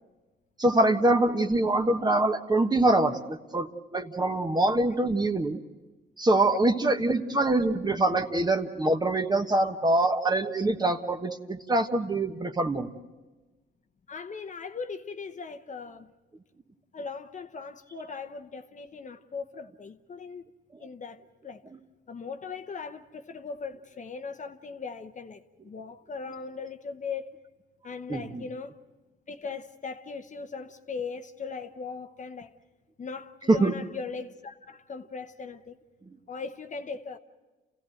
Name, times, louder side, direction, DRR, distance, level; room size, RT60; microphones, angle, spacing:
voice 1, 0.6-5.6 6.2-12.9 28.1-28.4 33.5-33.7, right 2 dB, 20° right, 1.3 m, -24 dB
voice 2, 14.1-16.1 16.9-21.6 22.1-27.3 27.8-28.8 29.3-32.5 33.0-35.8 36.3-37.2, left 5 dB, 40° left, 1.0 m, -39 dB
28.5 x 16.0 x 7.8 m
cardioid pair, 90°, 20 cm